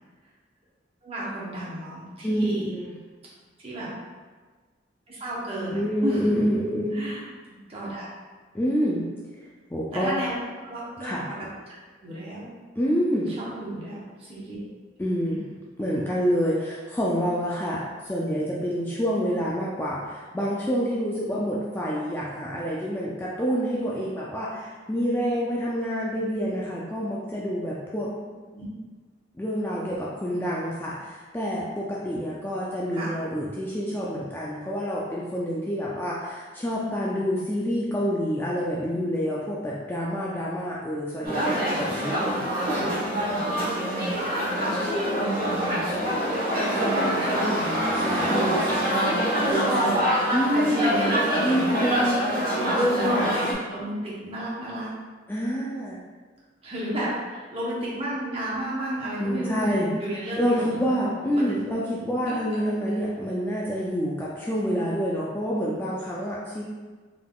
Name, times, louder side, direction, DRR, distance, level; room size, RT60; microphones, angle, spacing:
voice 1, 1.0-2.7 3.6-3.9 5.1-6.4 6.9-7.3 7.7-8.1 9.9-10.3 10.6-11.1 11.7-12.5 13.4-14.6 15.2-15.4 28.5-28.7 32.9-33.1 41.4-41.6 42.7-43.5 44.5-44.8 45.1-45.8 46.7-48.6 49.4-50.0 50.5-51.7 52.5-53.2 53.7-54.9 56.6-60.7 61.4-61.5 62.2-62.9, right 1 dB, 30° right, -6 dB, 0.9 m, -33 dB
voice 2, 2.2-2.9 5.6-6.9 8.5-9.1 9.7-10.2 11.0-11.2 12.8-13.3 15.0-15.4 15.8-28.1 29.4-42.7 47.9-48.7 50.3-52.3 55.3-56.0 59.2-59.9 60.4-66.6, equal, 10° left, -6 dB, 0.3 m, -27 dB
sound 1, 41.2-53.5, equal, 50° right, 1.2 m, -25 dB
3.7 x 3.6 x 2.3 m, 1.4 s
head